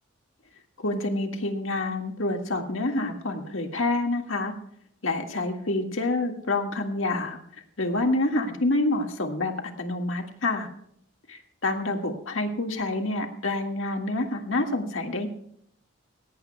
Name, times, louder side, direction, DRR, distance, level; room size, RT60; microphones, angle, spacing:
voice 1, 0.8-4.6 5.0-7.4 7.8-9.5 9.8-10.7 11.3-15.3, left 2 dB, 75° left, 4 dB, 1.9 m, -27 dB
18.0 x 17.5 x 2.3 m, 0.68 s
head